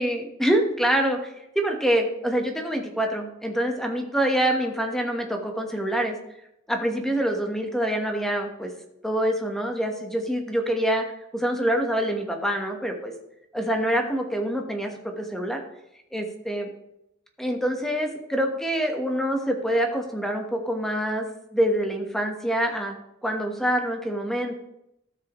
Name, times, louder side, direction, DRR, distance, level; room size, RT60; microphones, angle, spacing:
voice 1, 0.0-6.2 6.7-8.7 9.0-11.0 11.3-13.1 13.5-15.6 16.1-16.7 17.4-21.3 21.5-22.9 23.2-24.5, right 1 dB, ahead, 3 dB, 1.2 m, -25 dB
13.0 x 7.6 x 3.1 m, 0.84 s
head